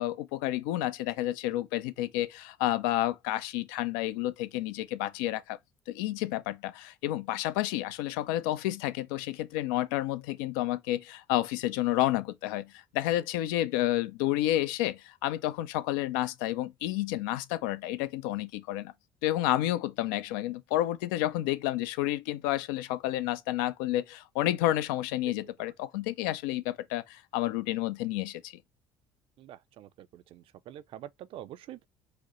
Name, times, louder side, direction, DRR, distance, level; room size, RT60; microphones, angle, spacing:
voice 1, 0.0-5.6 5.9-18.9 19.2-28.6, left 14 dB, 85° left, 0.5 m, -30 dB
voice 2, 29.4-31.9, right 12 dB, 60° right, 0.5 m, -46 dB
4.9 x 2.1 x 3.0 m
supercardioid pair, 80°, 10 cm